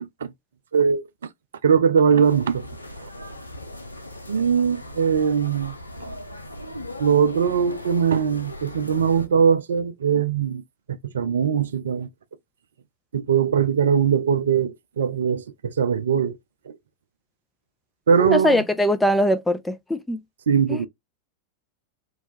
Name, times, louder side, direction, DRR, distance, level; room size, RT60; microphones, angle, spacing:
voice 1, 0.7-1.0 1.6-2.6 3.0-3.1 4.3-5.7 6.0-6.1 7.0-10.6 10.9-12.1 13.1-16.4 16.7-16.8 18.1-18.6 20.5-20.9, right 7 dB, 65° right, 0.3 m, -21 dB
sound 1, 2.2-9.3, left 1 dB, 85° left, 0.4 m, -38 dB
voice 2, 18.2-20.2 20.7-20.8, left 1 dB, 5° left, 0.4 m, -21 dB
2.9 x 2.2 x 2.6 m
figure-of-eight pair, 90°, 0 cm